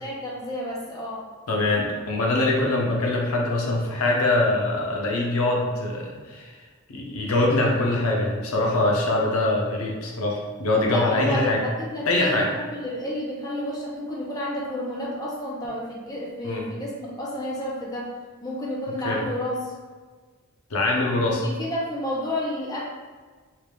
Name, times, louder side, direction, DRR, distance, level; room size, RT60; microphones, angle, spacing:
voice 1, 0.0-1.3 10.8-18.1 18.4-19.5 21.3-22.8, left 1 dB, 15° left, -5 dB, 0.6 m, -31 dB
voice 2, 1.5-6.6 6.9-11.6 12.1-12.5 16.4-16.6 19.0-19.2 20.7-21.4, left 2 dB, 85° left, -1 dB, 0.6 m, -23 dB
3.0 x 2.3 x 3.3 m, 1.4 s
head